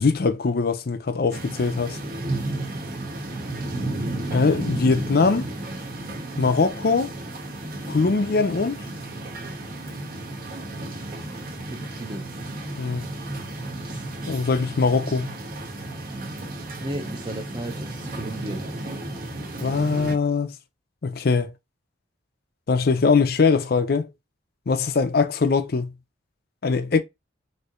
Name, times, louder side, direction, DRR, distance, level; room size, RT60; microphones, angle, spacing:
voice 1, 0.0-2.0 4.3-5.4 6.4-7.1 7.9-8.8 12.8-13.1 14.3-15.3 19.6-20.5 21.0-21.5 22.7-24.1 24.7-25.9 26.6-27.0, left 4 dB, 55° left, 0.5 m, -21 dB
sound 1, 1.3-20.1, right 1 dB, 50° right, 1.0 m, -33 dB
voice 2, 11.7-12.3 13.9-14.1 16.8-18.7, right 1 dB, 25° right, 0.6 m, -34 dB
4.3 x 2.8 x 2.4 m
head